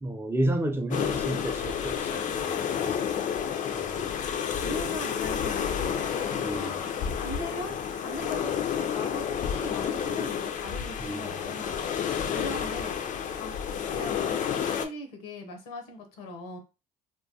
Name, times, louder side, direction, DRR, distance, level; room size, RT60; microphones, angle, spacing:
voice 1, 0.0-3.0 3.7-4.1 6.4-6.8 11.0-11.4, right 1 dB, 15° right, 0.5 m, -32 dB
sound 1, 0.9-14.9, left 8 dB, 45° left, 0.4 m, -30 dB
voice 2, 4.6-8.5 8.9-11.9 12.3-13.0 13.4-16.6, left 2 dB, 85° left, 0.6 m, -40 dB
2.2 x 2.2 x 2.6 m
hypercardioid pair, 65°, 18 cm